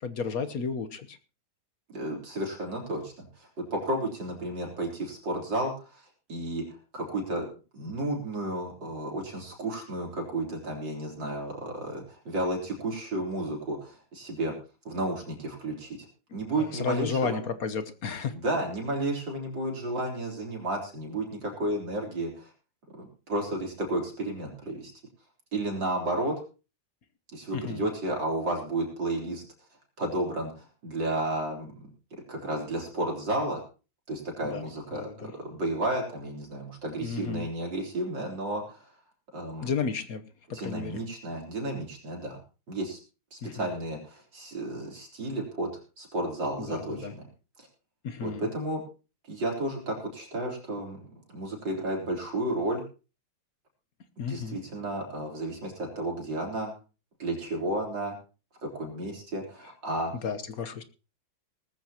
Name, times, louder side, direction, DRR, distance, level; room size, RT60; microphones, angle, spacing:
voice 1, 0.0-1.2 16.3-18.3 27.5-27.9 34.5-34.6 34.9-35.3 37.0-37.5 39.6-40.2 40.5-41.0 43.4-43.7 46.7-47.1 48.0-48.5 54.2-54.6 60.2-60.8, left 5 dB, 55° left, 11 dB, 1.3 m, -33 dB
voice 2, 1.9-6.0 6.3-6.7 6.9-7.5 7.7-14.6 14.8-16.1 16.3-17.4 18.3-22.5 22.9-24.9 25.5-26.3 27.3-29.4 30.0-31.7 32.3-33.6 34.1-38.9 39.3-39.7 40.5-42.4 42.7-43.0 43.3-45.7 46.0-47.3 48.2-48.8 49.3-52.8 54.3-56.7 57.2-58.2 58.6-60.1, right 1 dB, 65° right, 0 dB, 4.4 m, -32 dB
19.0 x 14.5 x 2.9 m, 0.34 s
omnidirectional pair, 2.1 m